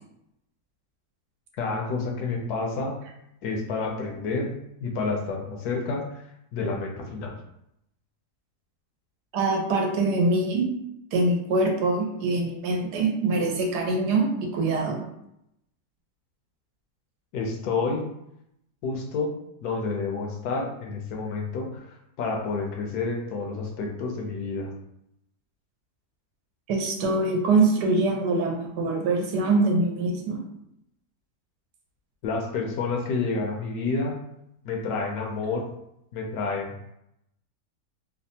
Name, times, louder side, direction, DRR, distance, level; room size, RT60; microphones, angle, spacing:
voice 1, 1.5-3.0 3.4-6.0 6.5-7.3 17.3-18.1 18.8-19.3 19.6-24.7 32.2-34.1 34.6-35.6 36.1-36.7, left 4 dB, 75° left, 1 dB, 1.1 m, -29 dB
voice 2, 9.3-10.7 11.1-15.0 26.7-30.5, right 3 dB, 85° right, 1 dB, 1.2 m, -24 dB
3.3 x 2.1 x 2.7 m, 0.80 s
omnidirectional pair, 1.8 m